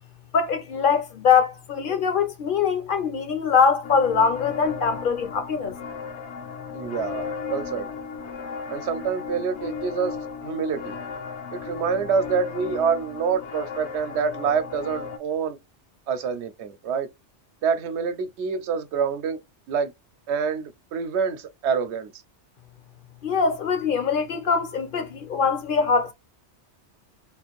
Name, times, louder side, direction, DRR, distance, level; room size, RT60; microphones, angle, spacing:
voice 1, 0.3-5.7 23.2-26.1, left 5 dB, 60° left, 0.6 m, -22 dB
sound 1, 3.8-15.2, left 5 dB, 75° left, 1.0 m, -35 dB
voice 2, 6.7-7.9 8.7-10.2 10.4-10.9 11.5-15.6 16.1-17.1 17.6-19.4 19.7-19.9 20.3-22.1, right 6 dB, 75° right, 0.9 m, -26 dB
3.6 x 2.5 x 2.9 m
omnidirectional pair, 1.2 m